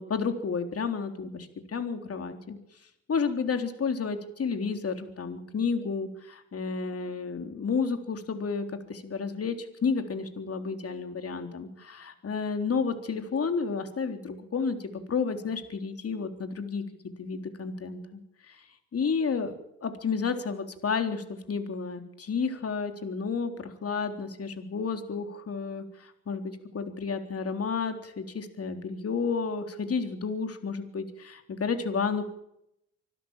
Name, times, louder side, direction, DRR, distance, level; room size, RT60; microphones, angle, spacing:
voice 1, 0.0-2.6 3.1-16.8 17.2-18.6 18.9-19.5 19.8-32.3, left 5 dB, 45° left, 7 dB, 3.7 m, -31 dB
25.0 x 13.0 x 9.0 m, 0.79 s
supercardioid pair, 60°, 33 cm